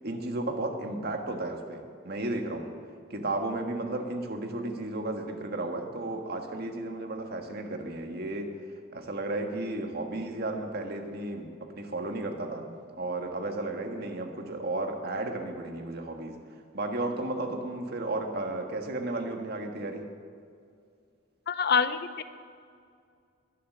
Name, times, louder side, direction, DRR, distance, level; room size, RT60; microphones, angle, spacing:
voice 1, 0.0-2.7 3.1-8.5 8.9-16.4 16.7-20.1, right 2 dB, 50° right, 3 dB, 1.5 m, -33 dB
voice 2, 21.5-22.2, left 6 dB, 50° left, 11 dB, 0.6 m, -26 dB
21.0 x 7.5 x 6.6 m, 2.3 s
head